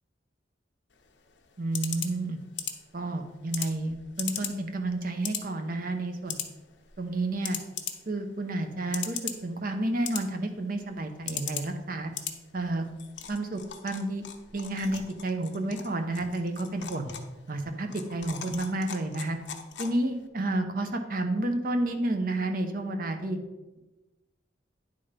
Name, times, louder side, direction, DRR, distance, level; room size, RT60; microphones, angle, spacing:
sound 1, 0.9-20.3, left 9 dB, 90° left, 0.8 m, -40 dB
voice 1, 1.6-2.4 2.9-6.4 7.0-7.6 8.1-9.2 9.4-12.1 12.5-12.9 13.3-14.2 14.5-17.1 17.5-19.4 19.8-23.4, right 2 dB, 50° right, 6 dB, 0.8 m, -30 dB
9.9 x 3.9 x 5.1 m, 1.1 s
head